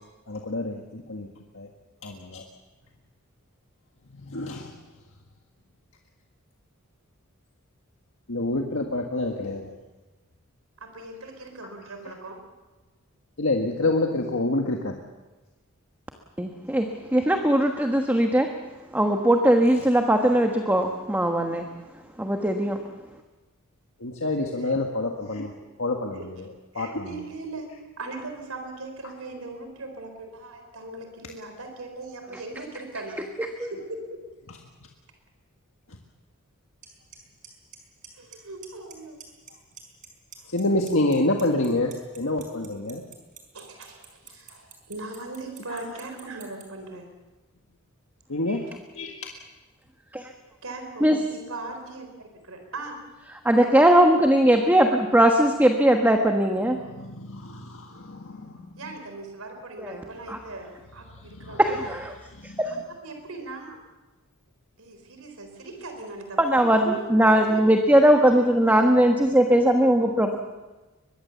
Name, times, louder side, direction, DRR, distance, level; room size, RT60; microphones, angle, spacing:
voice 1, 0.3-1.3 1.5-1.7 2.0-2.4 4.2-4.7 8.3-9.7 13.4-14.9 24.0-25.5 25.8-26.4 26.7-27.1 40.5-43.0 45.7-45.8 48.3-48.6 48.9-49.3 56.8-58.6 61.4-61.6 62.4-62.5, left 2 dB, 65° left, 2 dB, 1.7 m, -27 dB
voice 2, 10.8-12.4 24.6-24.8 26.1-26.3 26.7-27.7 28.0-33.2 33.6-34.2 38.2-39.2 40.4-40.5 43.5-47.1 50.6-51.1 51.5-53.0 58.8-61.8 63.0-63.8 64.8-66.5 67.3-67.7, right 2 dB, 85° right, 5 dB, 4.0 m, -39 dB
voice 3, 16.4-18.5 18.9-21.7 22.2-22.8 33.6-33.7 50.1-50.3 51.0-51.2 53.4-56.8 59.8-60.0 60.3-60.4 61.6-62.1 62.6-62.7 66.4-70.4, right 1 dB, 10° right, 4 dB, 1.3 m, -20 dB
Clock, 36.8-36.9 37.1-37.5 37.7-38.4 38.6-38.9 39.2-40.1 40.3-46.6, right 10 dB, 40° right, 4.7 m, -44 dB
23.0 x 21.5 x 7.1 m, 1.2 s
head